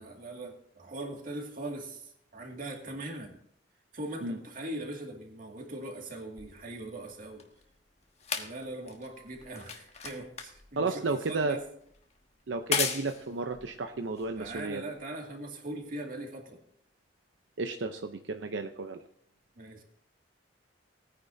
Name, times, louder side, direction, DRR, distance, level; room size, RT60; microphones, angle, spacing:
voice 1, 0.0-3.3 3.9-7.5 8.3-11.6 14.4-16.6 19.6-19.8, right 1 dB, 50° right, 2 dB, 2.2 m, -40 dB
sound 1, 6.4-15.0 15.8-15.9, left 6 dB, 35° left, 1.2 m, -38 dB
voice 2, 10.8-11.6 12.5-14.8 17.6-19.0, right 3 dB, 85° right, 6 dB, 0.7 m, -32 dB
19.0 x 9.5 x 2.7 m, 0.66 s
head